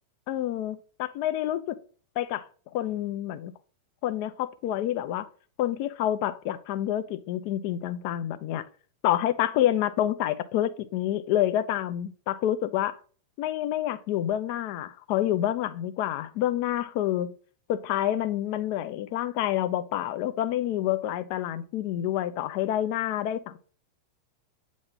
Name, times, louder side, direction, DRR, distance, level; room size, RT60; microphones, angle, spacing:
voice 1, 0.3-1.8 2.2-3.5 4.0-5.3 5.6-8.6 9.0-13.0 13.4-17.3 17.7-23.6, left 12 dB, 45° left, 0.6 m, -28 dB
8.7 x 3.1 x 3.7 m
figure-of-eight pair, 90°, 0 cm